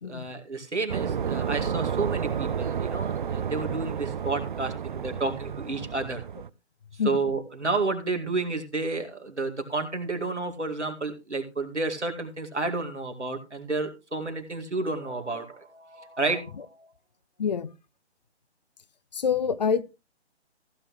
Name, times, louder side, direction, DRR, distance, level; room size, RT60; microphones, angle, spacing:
voice 1, 0.0-6.2 7.1-16.9, right 3 dB, 90° right, 2.3 m, -31 dB
sound 1, 0.9-6.5, right 7 dB, 45° right, 0.5 m, -31 dB
voice 2, 17.4-17.7 19.1-19.8, left 6 dB, 40° left, 0.5 m, -26 dB
15.5 x 8.5 x 3.1 m
figure-of-eight pair, 140°, 34 cm